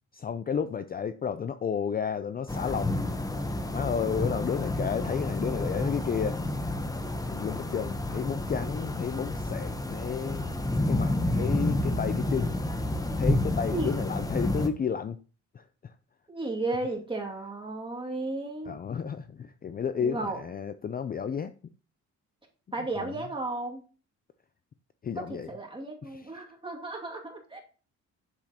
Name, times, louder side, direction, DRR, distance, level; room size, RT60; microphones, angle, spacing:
voice 1, 0.1-3.2 3.7-6.4 7.3-10.4 10.9-12.5 13.2-15.2 15.5-15.9 18.7-21.5 23.0-23.1 25.0-25.5 26.1-26.3, left 7 dB, 30° left, 0.4 m, -32 dB
sound 1, 2.5-14.7, left 1 dB, 10° left, 0.9 m, -30 dB
voice 2, 16.3-18.7 20.0-20.4 22.7-23.8 25.2-27.6, right 2 dB, 15° right, 2.3 m, -34 dB
7.3 x 7.2 x 2.9 m
cardioid pair, 90°, 30 cm